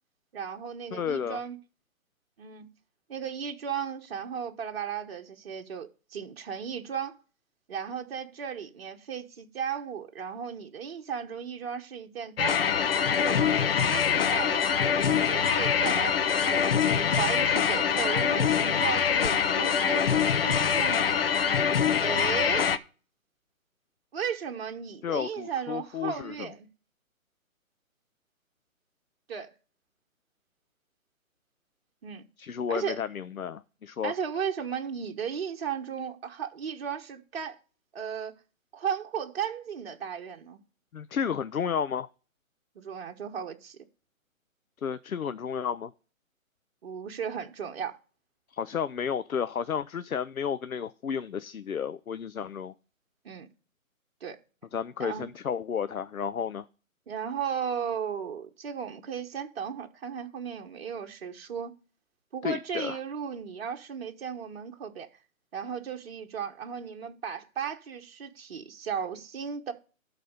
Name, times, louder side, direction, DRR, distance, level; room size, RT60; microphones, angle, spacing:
voice 1, 0.3-1.6 2.4-2.7 3.1-7.2 7.7-12.6 13.2-14.7 15.0-16.6 16.9-20.0 20.4-21.2 22.0-22.7 24.1-26.6 29.3-29.5 32.0-32.3 32.7-33.0 34.0-37.6 37.9-38.3 38.7-40.6 42.7-43.8 46.8-48.0 53.2-53.5 54.2-54.4 55.0-55.3 57.1-61.8 62.3-65.1 65.5-69.7, right 7 dB, 45° right, 1.2 m, -35 dB
voice 2, 0.9-1.4 25.0-26.5 32.4-34.1 40.9-42.1 44.8-45.9 48.5-52.7 54.7-56.6 62.4-63.0, left 7 dB, 80° left, 0.7 m, -32 dB
sound 1, 12.4-22.8, left 7 dB, 45° left, 0.7 m, -24 dB
12.0 x 4.2 x 6.6 m
figure-of-eight pair, 140°, 41 cm